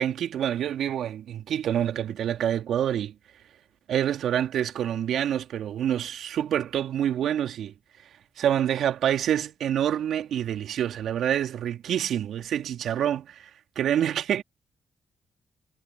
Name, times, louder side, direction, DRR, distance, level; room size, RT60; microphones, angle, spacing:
voice 1, 0.0-3.1 3.9-7.7 8.4-13.5 13.8-14.4, right 10 dB, 70° right, 2.5 m, -27 dB
hypercardioid pair, 40°, 0 cm